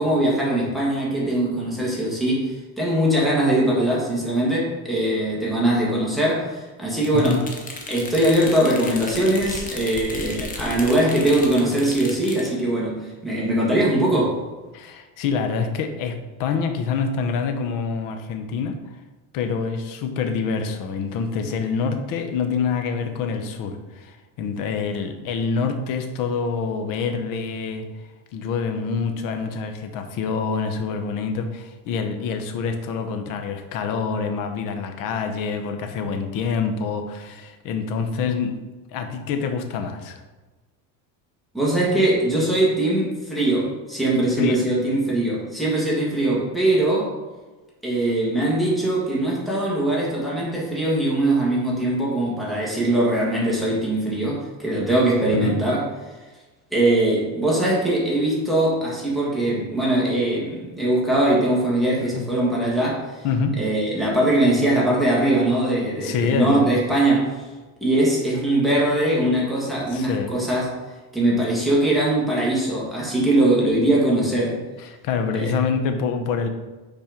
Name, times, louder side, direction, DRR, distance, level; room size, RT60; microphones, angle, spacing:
voice 1, 0.0-7.4 7.9-14.4 41.5-47.1 47.8-55.8 56.7-63.1 63.6-67.4 67.8-70.7 71.1-74.6 75.3-75.5, right 1 dB, ahead, -5 dB, 1.7 m, -21 dB
sound 1, 7.0-12.5, left 3 dB, 20° left, 0.9 m, -35 dB
voice 2, 7.1-7.4 14.7-19.0 19.3-27.9 28.3-38.6 38.9-40.2 44.4-44.6 55.3-55.6 62.1-62.2 63.2-63.5 65.9-66.7 69.9-70.3 74.8-76.5, left 5 dB, 60° left, 7 dB, 1.0 m, -26 dB
5.7 x 4.4 x 5.1 m, 1.2 s
cardioid pair, 155°, 36 cm